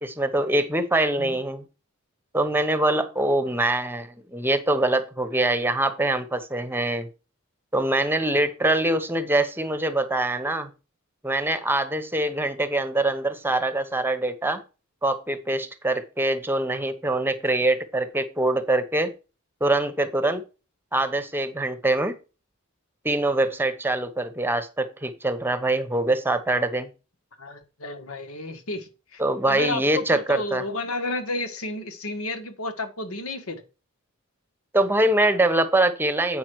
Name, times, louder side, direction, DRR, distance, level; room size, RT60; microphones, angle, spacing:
voice 1, 0.0-1.7 2.3-7.1 7.7-10.7 11.2-14.6 15.0-19.1 19.6-20.4 20.9-22.1 23.0-26.9 29.2-30.6 34.7-36.4, right 2 dB, 10° right, 1.0 m, -24 dB
voice 2, 27.4-29.2 29.5-33.6, left 2 dB, 80° left, 1.6 m, -32 dB
8.4 x 5.8 x 4.7 m
head